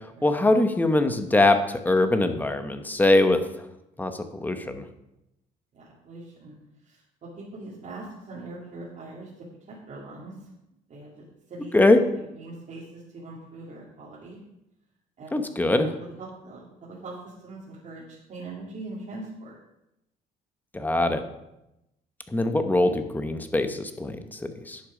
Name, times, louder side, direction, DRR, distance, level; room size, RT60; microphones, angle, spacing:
voice 1, 0.2-3.4 4.0-4.8 11.7-12.0 15.3-15.9 20.7-21.2 22.3-24.8, left 2 dB, 10° left, 8 dB, 1.0 m, -22 dB
voice 2, 5.7-6.5 6.8-10.4 10.9-11.8 12.1-14.4 15.2-15.4 15.8-19.6, right 2 dB, 45° right, -6 dB, 2.3 m, -42 dB
10.5 x 6.3 x 5.0 m, 0.88 s
cardioid pair, 110°, 17 cm